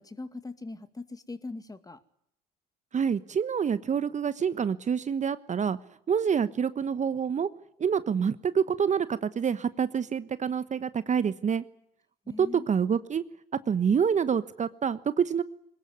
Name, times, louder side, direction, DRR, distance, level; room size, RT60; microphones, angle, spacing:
voice 1, 0.0-2.0 12.3-12.7, left 3 dB, 15° left, 11 dB, 2.2 m, -41 dB
voice 2, 2.9-5.8 6.1-7.5 7.8-11.6 12.4-13.2 13.7-15.4, right 7 dB, 35° right, 15 dB, 1.2 m, -27 dB
22.5 x 20.0 x 9.4 m, 0.72 s
hypercardioid pair, 60°, 21 cm